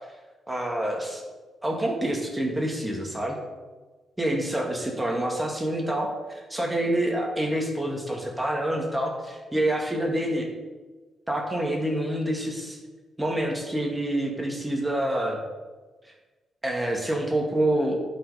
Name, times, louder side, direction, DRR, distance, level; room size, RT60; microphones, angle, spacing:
voice 1, 0.5-1.2 1.6-3.4 4.2-10.5 11.3-12.8 13.2-15.4 16.1-16.2 16.6-18.0, right 1 dB, 15° right, 0 dB, 2.1 m, -27 dB
11.0 x 5.4 x 5.1 m, 1.3 s
cardioid pair, 70°, 0 cm